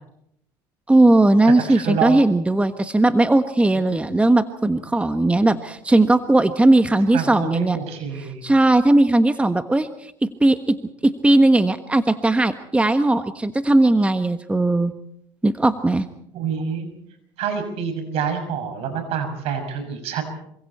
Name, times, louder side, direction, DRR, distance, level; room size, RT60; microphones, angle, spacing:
voice 1, 0.9-7.8 8.4-14.9 15.4-16.1, right 2 dB, 10° right, 9 dB, 1.3 m, -18 dB
voice 2, 1.7-2.1 7.1-8.4 16.3-16.9 17.4-20.3, right 7 dB, 65° right, 7 dB, 6.4 m, -27 dB
27.5 x 25.0 x 4.4 m, 0.75 s
hypercardioid pair, 75°, 11 cm